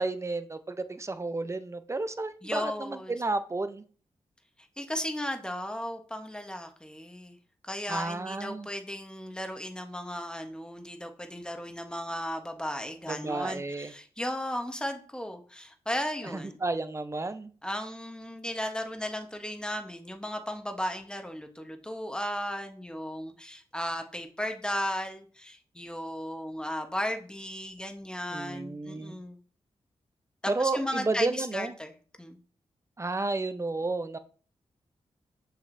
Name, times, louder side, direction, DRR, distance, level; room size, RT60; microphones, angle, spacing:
voice 1, 0.0-3.8 7.9-8.7 13.1-13.9 16.3-17.5 28.3-29.1 30.5-31.7 33.0-34.2, right 3 dB, 25° right, 11 dB, 0.6 m, -32 dB
voice 2, 2.4-3.1 4.6-7.4 7.6-16.6 17.6-29.4 30.4-32.4, left 1 dB, 5° left, 5 dB, 1.1 m, -35 dB
6.4 x 5.8 x 2.7 m, 0.42 s
cardioid pair, 55°, 12 cm